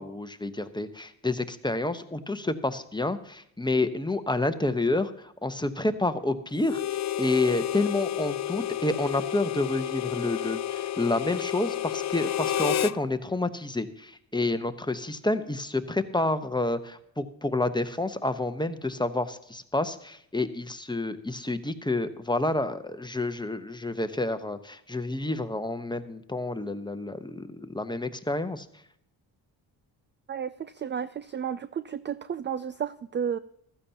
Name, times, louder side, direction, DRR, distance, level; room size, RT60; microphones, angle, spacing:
voice 1, 0.0-28.6, left 2 dB, 10° left, 10 dB, 1.0 m, -29 dB
Harmonica, 6.6-13.0, left 12 dB, 35° left, 0.5 m, -30 dB
voice 2, 30.3-33.4, right 8 dB, 25° right, 14 dB, 0.4 m, -32 dB
15.5 x 13.0 x 2.9 m, 0.74 s
hypercardioid pair, 40°, 50 cm